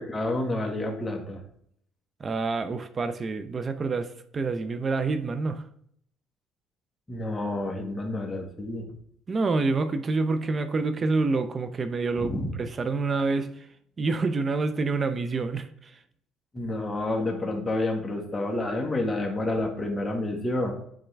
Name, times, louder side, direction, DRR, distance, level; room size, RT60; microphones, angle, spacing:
voice 1, 0.0-1.4 7.1-8.9 12.2-12.5 16.5-20.7, left 2 dB, 20° left, 1.8 m, -29 dB
voice 2, 2.2-5.6 9.3-13.7 14.0-15.9, right 3 dB, 35° right, 0.8 m, -27 dB
10.0 x 3.8 x 3.4 m
supercardioid pair, 85°, 0 cm